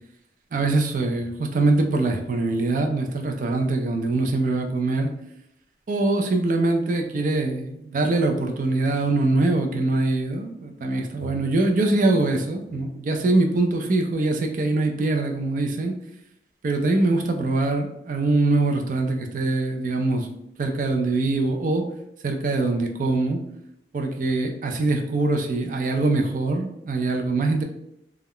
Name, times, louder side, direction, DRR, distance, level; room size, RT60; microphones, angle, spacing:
voice 1, 0.5-5.1 5.9-16.0 16.6-20.3 20.6-21.9 22.2-23.4 23.9-27.6, right 2 dB, 45° right, 3 dB, 0.3 m, -23 dB
2.2 x 2.0 x 3.6 m, 0.78 s
head